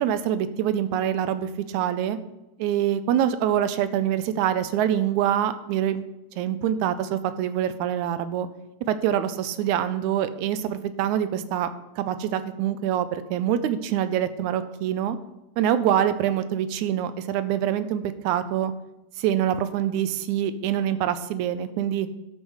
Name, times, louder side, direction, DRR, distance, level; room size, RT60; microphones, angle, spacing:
voice 1, 0.0-2.2 2.6-6.0 6.4-8.5 8.9-11.7 12.0-15.2 15.6-18.7 19.2-22.1, right 10 dB, 85° right, 12 dB, 2.0 m, -25 dB
12.0 x 6.2 x 4.9 m, 0.95 s
omnidirectional pair, 3.4 m